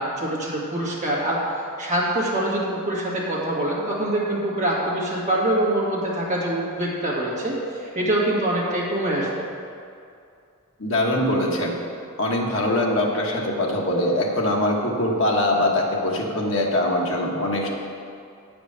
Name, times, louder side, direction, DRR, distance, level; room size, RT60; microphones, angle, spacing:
voice 1, 0.0-9.3, right 1 dB, 35° right, -5 dB, 2.0 m, -24 dB
voice 2, 10.8-11.8 12.2-17.7, left 1 dB, 60° left, -1 dB, 1.3 m, -22 dB
8.5 x 5.1 x 6.8 m, 2.4 s
head